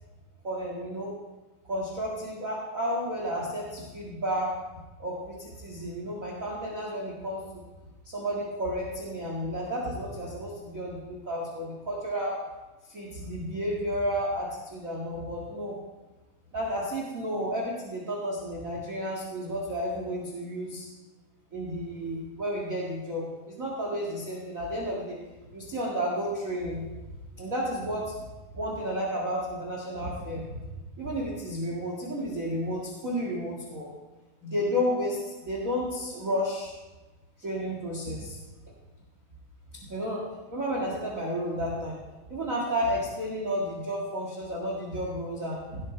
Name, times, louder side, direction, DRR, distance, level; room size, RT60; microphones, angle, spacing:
voice 1, 0.4-1.1 1.6-4.5 5.0-7.6 8.0-12.4 12.9-15.7 16.5-20.8 21.5-25.2 25.5-26.8 27.4-28.1 28.5-30.6 31.0-33.9 34.4-36.7 37.4-38.4 39.9-40.2 40.5-42.0 42.3-45.8, equal, 30° right, -3 dB, 1.7 m, -32 dB
16.5 x 13.0 x 3.4 m, 1.1 s
omnidirectional pair, 4.0 m